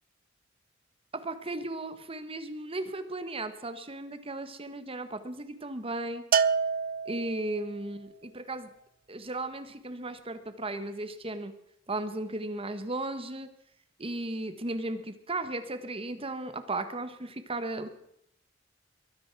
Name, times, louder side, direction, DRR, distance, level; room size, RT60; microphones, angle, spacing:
voice 1, 1.1-6.2 7.0-8.7 9.1-11.5 11.9-13.5 14.0-17.9, right 2 dB, 30° right, 9 dB, 1.4 m, -35 dB
Bell, 6.3-7.7, right 6 dB, 45° right, 0.5 m, -27 dB
22.5 x 9.3 x 6.1 m, 0.76 s
head